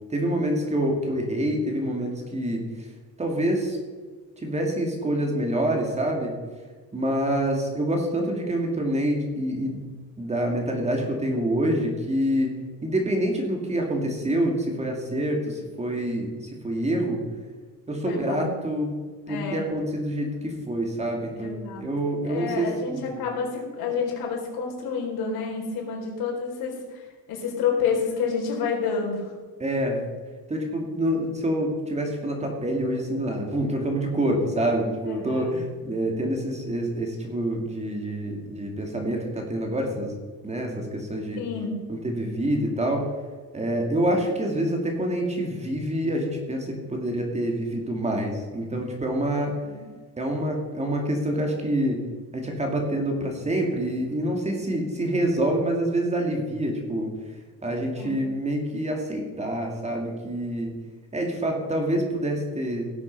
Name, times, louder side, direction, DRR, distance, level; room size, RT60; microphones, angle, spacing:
voice 1, 0.1-2.9 3.2-3.8 4.4-6.4 6.9-9.8 10.2-12.5 12.8-17.2 17.9-18.9 19.3-21.5 21.8-23.2 29.6-30.0 30.5-40.1 40.4-41.4 41.9-43.1 43.5-49.6 50.2-52.0 52.3-57.1 57.6-60.8 61.1-62.9, right 1 dB, 20° right, 1 dB, 2.4 m, -26 dB
voice 2, 18.0-18.5 19.3-19.6 21.4-21.9 22.2-29.3 35.1-35.5 41.4-41.8 49.3-49.9 57.9-58.2, left 5 dB, 85° left, -1 dB, 4.4 m, -29 dB
16.5 x 8.2 x 5.4 m, 1.4 s
cardioid pair, 150°, 36 cm